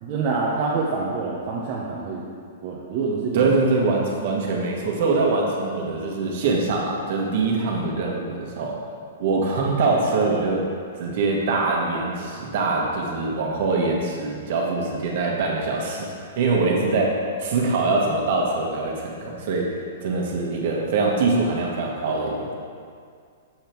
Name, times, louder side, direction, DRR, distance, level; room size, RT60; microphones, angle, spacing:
voice 1, 0.0-2.2 2.6-3.5, right 4 dB, 40° right, -5 dB, 0.9 m, -26 dB
voice 2, 3.3-8.8 9.2-10.7 11.0-22.6, right 3 dB, 60° right, -1 dB, 1.5 m, -23 dB
7.3 x 5.1 x 4.6 m, 2.2 s
hypercardioid pair, 150°, 0 cm